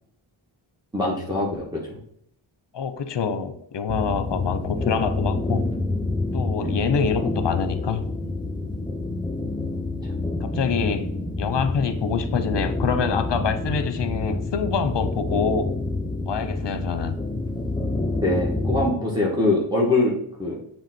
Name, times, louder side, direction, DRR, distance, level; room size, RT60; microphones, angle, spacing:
voice 1, 0.9-2.0 6.6-7.0 18.2-20.1 20.4-20.6, left 2 dB, 10° right, 1.9 m, -23 dB
voice 2, 2.7-5.7 6.3-8.0 10.4-11.1 11.4-15.7 16.3-17.2, left 6 dB, 60° left, 0.9 m, -26 dB
sound 1, 3.9-18.9, left 2 dB, 10° left, 0.6 m, -28 dB
7.3 x 3.3 x 4.3 m
cardioid pair, 60°, 47 cm